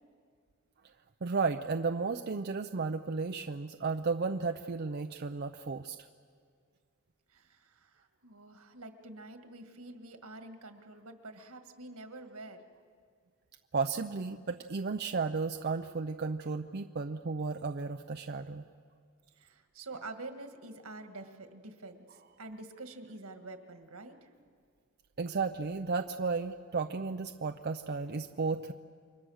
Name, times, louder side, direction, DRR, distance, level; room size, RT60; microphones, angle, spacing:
voice 1, 1.2-6.0 13.7-18.7 25.2-28.7, right 4 dB, 45° right, 6 dB, 0.5 m, -33 dB
voice 2, 7.3-12.6 19.4-24.3, right 2 dB, 75° right, 6 dB, 1.8 m, -47 dB
29.0 x 23.5 x 6.4 m, 2.1 s
head